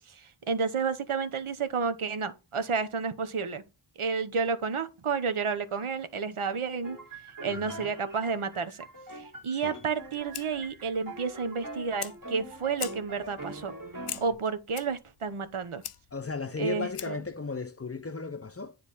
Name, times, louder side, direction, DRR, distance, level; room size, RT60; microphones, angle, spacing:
voice 1, 0.1-3.6 4.0-7.0 7.4-8.9 9.1-13.7 14.2-15.8 16.6-17.2, right 5 dB, 80° right, 0.9 m, -31 dB
sound 1, 6.8-14.3, right 2 dB, 40° right, 1.8 m, -43 dB
voice 2, 7.5-7.9 9.5-9.8 16.1-18.8, left 4 dB, 30° left, 0.6 m, -36 dB
Fire, 9.9-17.4, left 10 dB, 90° left, 0.6 m, -44 dB
9.5 x 3.3 x 4.1 m
wide cardioid pair, 45°, 50 cm